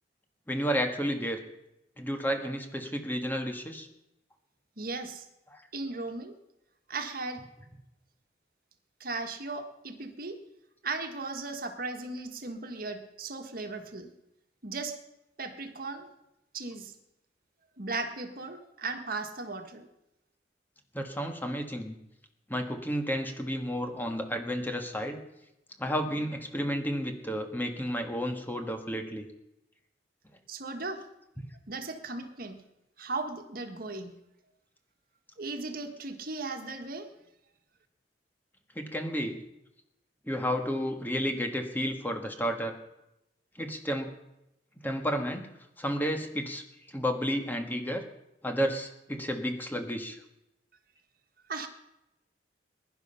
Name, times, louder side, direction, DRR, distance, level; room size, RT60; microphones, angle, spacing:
voice 1, 0.5-1.4 2.0-3.9 5.5-5.6 20.9-21.9 22.5-25.2 25.8-29.3 38.7-39.4 40.3-42.8 43.6-44.1 44.8-45.4 45.8-46.6 46.9-48.0 48.4-50.2, equal, 10° left, 4 dB, 1.6 m, -31 dB
voice 2, 4.8-5.3 5.7-6.3 6.9-7.4 9.0-10.4 10.8-14.1 14.6-15.0 15.4-16.1 16.5-16.9 17.8-19.9 30.5-31.0 31.7-32.6 33.0-34.1 35.4-37.1 51.5-51.7, right 3 dB, 55° right, 6 dB, 1.6 m, -37 dB
21.5 x 11.0 x 5.7 m, 0.88 s
head